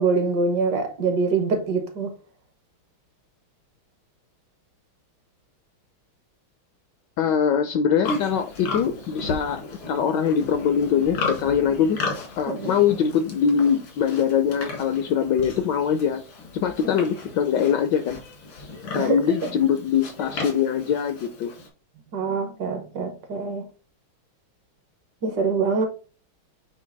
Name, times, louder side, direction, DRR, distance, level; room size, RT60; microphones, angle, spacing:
voice 1, 0.0-2.1 12.5-12.8 16.8-17.0 18.9-19.5 22.1-23.6 25.2-25.9, right 4 dB, 60° right, 1.4 m, -25 dB
voice 2, 7.2-12.0 12.4-16.2 16.5-18.2 18.9-21.5, left 7 dB, 70° left, 1.0 m, -22 dB
Livestock farm animals working animals, 8.0-21.7, left 3 dB, 90° left, 2.7 m, -35 dB
8.4 x 2.9 x 3.9 m
omnidirectional pair, 2.3 m